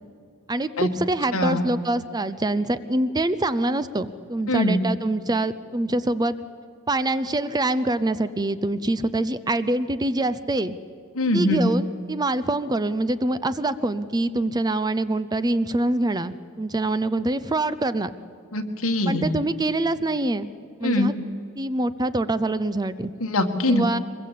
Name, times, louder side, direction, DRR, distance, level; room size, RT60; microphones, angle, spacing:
voice 1, 0.5-6.4 6.9-10.8 11.3-18.1 19.1-20.5 20.8-21.1 21.6-23.1 23.7-24.0, right 2 dB, 20° right, 14 dB, 0.6 m, -25 dB
voice 2, 1.3-1.7 4.5-4.8 11.2-11.7 18.5-19.3 20.8-21.1 23.2-23.9, left 1 dB, 70° left, 5 dB, 1.9 m, -22 dB
23.5 x 21.5 x 8.4 m, 2.4 s
head